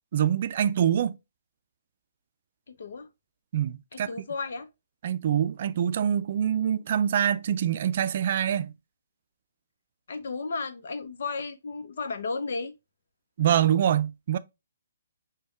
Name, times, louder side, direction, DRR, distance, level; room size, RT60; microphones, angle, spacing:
voice 1, 0.1-1.2 3.5-4.1 5.0-8.7 13.4-14.4, right 9 dB, 50° right, 0.4 m, -25 dB
voice 2, 2.7-3.1 3.9-4.7 10.1-12.7, left 4 dB, 65° left, 0.7 m, -34 dB
6.1 x 2.2 x 3.1 m
figure-of-eight pair, 135°, 0 cm